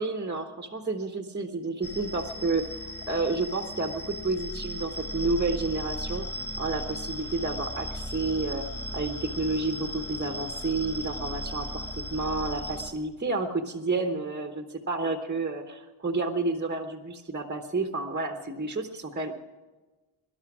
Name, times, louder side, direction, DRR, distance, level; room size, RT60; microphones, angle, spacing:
voice 1, 0.0-6.3 6.6-8.6 8.9-19.4, right 3 dB, 20° right, 5 dB, 1.0 m, -30 dB
sound 1, 1.8-12.9, equal, 5° left, 1.8 m, -37 dB
19.5 x 11.5 x 6.0 m, 1.2 s
wide cardioid pair, 130°, 49 cm